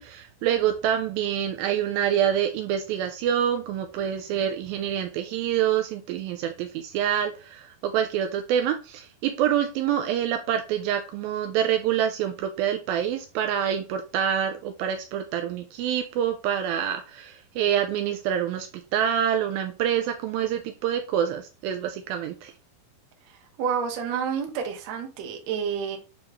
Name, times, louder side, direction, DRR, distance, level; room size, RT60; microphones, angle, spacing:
voice 1, 0.0-22.5, right 9 dB, 80° right, 2.3 m, -26 dB
voice 2, 23.6-26.0, right 7 dB, 60° right, 1.9 m, -29 dB
8.8 x 3.5 x 3.1 m
omnidirectional pair, 4.4 m